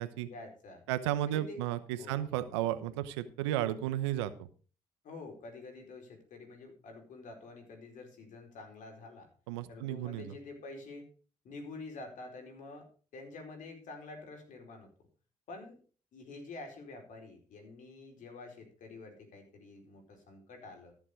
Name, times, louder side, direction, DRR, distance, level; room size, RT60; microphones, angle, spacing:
voice 1, 0.2-0.8 1.2-1.6 2.0-2.2 5.0-9.3 9.7-11.1 11.4-12.9 13.1-14.9 15.5-15.8 16.1-20.9, left 3 dB, 65° left, 4 dB, 4.6 m, -48 dB
voice 2, 0.9-4.3 9.5-10.3, right 13 dB, 90° right, 13 dB, 0.9 m, -33 dB
14.0 x 7.3 x 5.1 m, 0.39 s
hypercardioid pair, 55°, 14 cm